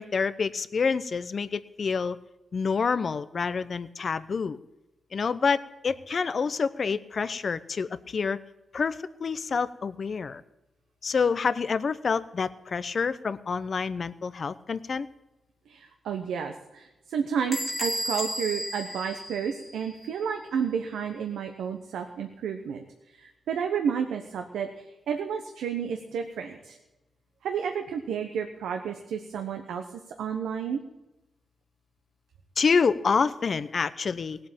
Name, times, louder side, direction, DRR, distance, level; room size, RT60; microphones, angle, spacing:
voice 1, 0.0-2.2 2.5-4.6 5.1-8.4 8.7-10.4 11.0-15.1 32.6-34.4, left 5 dB, 55° left, 14 dB, 0.8 m, -27 dB
voice 2, 15.7-22.8 23.2-26.8 27.4-29.8 30.2-30.8, right 7 dB, 85° right, 5 dB, 1.0 m, -31 dB
Bell / Door, 17.5-20.0, equal, 5° right, 1.7 m, -33 dB
17.5 x 7.9 x 8.8 m, 0.99 s
cardioid pair, 60°, 0 cm